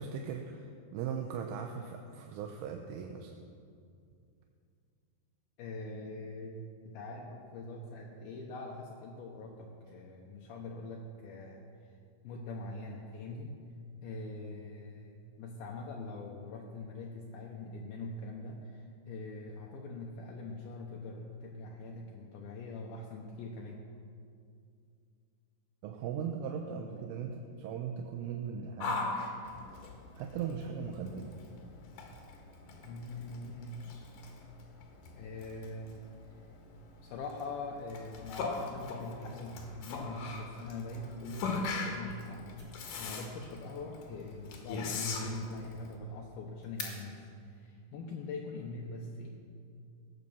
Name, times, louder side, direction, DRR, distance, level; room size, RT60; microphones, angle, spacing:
voice 1, 0.0-3.3 25.8-29.0 30.1-31.4, right 7 dB, 85° right, 3 dB, 3.3 m, -38 dB
voice 2, 5.6-11.9 12.2-13.6 14.0-23.8 31.1-31.3 32.8-33.9 35.2-36.1 37.0-49.3, left 2 dB, 80° left, 0 dB, 2.2 m, -43 dB
Yell, 28.8-45.9, left 3 dB, 65° left, 2.3 m, -41 dB
sound 1, 41.9-47.7, left 3 dB, 45° left, 0.8 m, -51 dB
16.5 x 9.0 x 7.0 m, 2.4 s
omnidirectional pair, 5.6 m